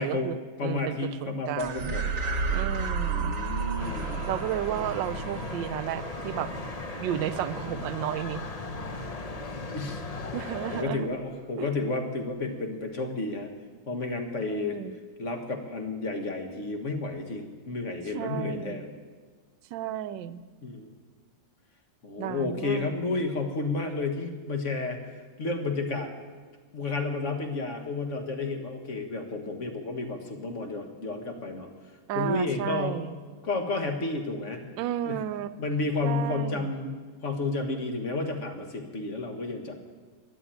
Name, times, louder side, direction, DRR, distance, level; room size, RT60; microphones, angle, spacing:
voice 1, 0.0-1.9 2.5-3.4 4.3-6.5 7.0-8.4 10.3-11.1 11.6-11.7 14.4-15.0 18.1-18.8 19.7-20.4 22.2-22.9 32.1-33.2 34.8-35.5 36.0-36.7, right 11 dB, 80° right, 15 dB, 1.3 m, -33 dB
voice 2, 0.6-2.1 3.1-4.2 9.7-10.0 10.7-13.5 13.9-14.8 15.2-18.9 20.6-20.9 22.0-25.0 25.4-26.1 26.7-31.7 32.2-33.0 33.4-34.6 35.0-35.2 35.6-39.7, left 3 dB, 40° left, 5 dB, 1.7 m, -31 dB
sound 1, 1.6-10.2, right 5 dB, 45° right, 1.5 m, -34 dB
sound 2, 3.8-10.8, left 3 dB, 90° left, 0.3 m, -37 dB
13.0 x 10.5 x 9.1 m, 1.5 s
omnidirectional pair, 2.1 m